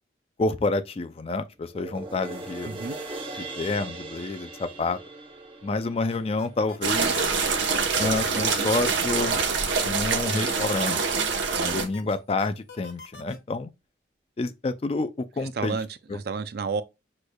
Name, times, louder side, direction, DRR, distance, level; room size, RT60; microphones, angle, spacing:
voice 1, 0.4-2.8 3.3-5.0 5.6-7.2 8.0-9.4 9.8-11.0 11.6-13.7 14.4-15.8 16.1-16.2, left 3 dB, 30° left, 0.3 m, -28 dB
sound 1, 1.7-8.3 8.7-8.8, right 2 dB, 30° right, 0.9 m, -40 dB
voice 2, 2.7-3.0 11.5-11.8 15.5-16.8, right 4 dB, 55° right, 0.4 m, -31 dB
sound 2, 6.1-6.8 7.1-11.6 11.9-13.4, left 3 dB, 60° left, 0.9 m, -44 dB
sound 3, 6.8-11.8, right 5 dB, 75° right, 0.9 m, -25 dB
6.3 x 3.2 x 2.3 m
head